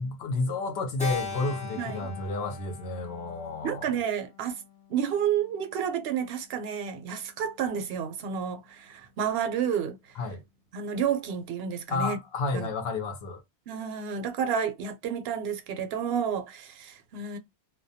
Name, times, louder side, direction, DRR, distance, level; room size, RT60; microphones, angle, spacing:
voice 1, 0.0-3.9 10.2-10.4 11.9-13.4, left 3 dB, 70° left, 0.8 m, -31 dB
Keyboard (musical), 1.0-5.4, left 6 dB, 10° left, 0.3 m, -40 dB
voice 2, 1.8-2.1 3.6-4.6 4.9-10.2 10.7-12.2 12.5-12.7 13.7-17.4, right 7 dB, 70° right, 0.8 m, -30 dB
2.2 x 2.2 x 2.6 m
omnidirectional pair, 1.1 m